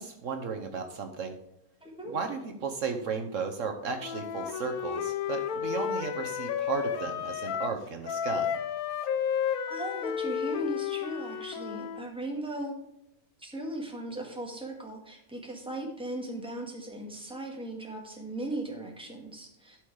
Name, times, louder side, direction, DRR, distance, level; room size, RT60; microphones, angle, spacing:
voice 1, 0.0-1.4 2.1-8.6, right 5 dB, 65° right, 4 dB, 1.2 m, -34 dB
voice 2, 1.8-2.1 9.7-12.8 13.4-19.8, right 1 dB, 5° right, 0 dB, 1.6 m, -37 dB
Wind instrument woodwind instrument, 4.0-7.8 8.1-12.1, left 8 dB, 85° left, 1.1 m, -32 dB
12.0 x 4.7 x 4.8 m, 0.82 s
omnidirectional pair, 1.5 m